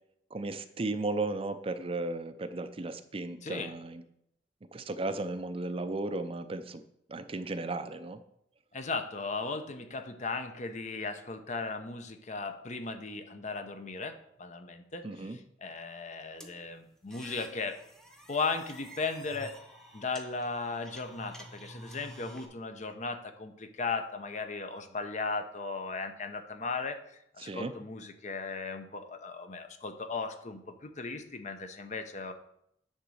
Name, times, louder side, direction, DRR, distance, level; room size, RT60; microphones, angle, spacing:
voice 1, 0.3-4.0 4.7-6.8 7.1-8.2 15.0-15.4 27.4-27.7, right 2 dB, 35° right, 10 dB, 0.5 m, -35 dB
voice 2, 3.4-3.7 8.7-17.8 18.3-19.6 19.9-27.0 27.3-32.3, left 4 dB, 45° left, 8 dB, 0.7 m, -37 dB
sound 1, 16.4-22.5, equal, 5° left, 0.9 m, -50 dB
10.0 x 4.0 x 6.3 m, 0.76 s
head